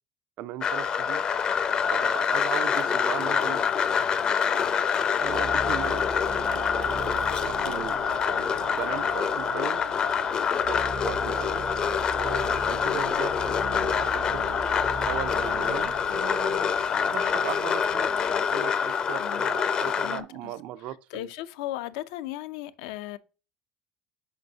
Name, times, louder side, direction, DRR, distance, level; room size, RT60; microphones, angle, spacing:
voice 1, 0.4-1.2 1.9-3.6 5.2-6.1 6.5-8.0 8.4-9.8 10.7-11.6 12.2-13.4 13.8-14.5 15.1-18.1 18.5-21.3, right 13 dB, 55° right, 0.3 m, -38 dB
sound 1, 0.6-20.2, left 7 dB, 30° left, 0.5 m, -26 dB
sound 2, 5.2-18.5, right 5 dB, 85° right, 0.9 m, -39 dB
voice 2, 20.0-20.5 21.1-23.2, left 15 dB, 85° left, 0.5 m, -36 dB
6.5 x 5.4 x 2.7 m
cardioid pair, 140°, 3 cm